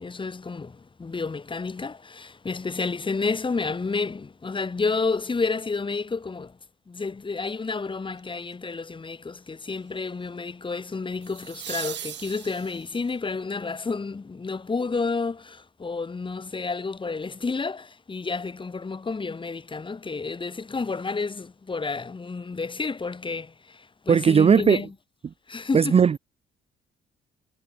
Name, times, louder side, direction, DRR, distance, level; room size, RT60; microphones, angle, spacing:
voice 1, 0.0-6.6 6.9-24.9 25.5-26.0, left 4 dB, 25° left, 1.5 m, -30 dB
sound 1, 8.2-8.5 11.2-13.1 16.0-16.1, right 11 dB, 65° right, 1.2 m, -38 dB
voice 2, 24.1-24.8 25.7-26.2, right 7 dB, 30° right, 0.5 m, -17 dB
cardioid pair, 90°, 20 cm